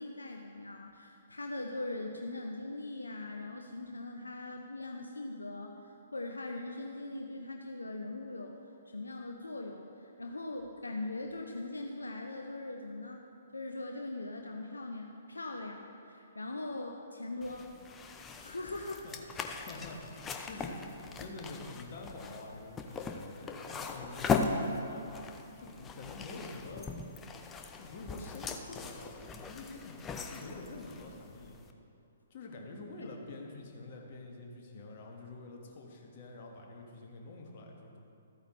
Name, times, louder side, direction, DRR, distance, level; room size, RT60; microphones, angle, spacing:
voice 1, 0.0-8.6 8.9-13.2 13.5-17.7 18.4-19.0 34.7-35.0, left 2 dB, 75° left, 2 dB, 0.6 m, -41 dB
sound 1, 17.4-31.7, left 4 dB, 15° left, 0.5 m, -39 dB
voice 2, 19.6-26.9 27.8-30.0 30.3-31.6 32.3-38.0, left 2 dB, 40° left, 0 dB, 1.5 m, -47 dB
13.5 x 8.9 x 3.1 m, 2.7 s
figure-of-eight pair, 125°, 0 cm